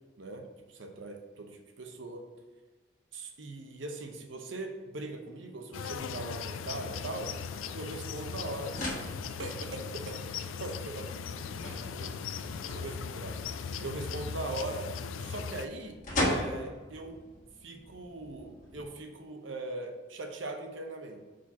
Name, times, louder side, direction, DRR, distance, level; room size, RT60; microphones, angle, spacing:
voice 1, 0.2-2.3 3.1-7.3 7.7-8.8 9.4-10.2 10.6-11.1 11.9-12.1 12.7-13.4 13.8-14.9 15.2-17.2 17.6-21.2, right 2 dB, 65° right, 4 dB, 0.9 m, -40 dB
sound 1, 5.7-15.7, left 6 dB, 80° left, 0.4 m, -38 dB
sound 2, 8.1-18.9, left 1 dB, 40° left, 1.5 m, -40 dB
5.0 x 4.3 x 5.5 m, 1.3 s
head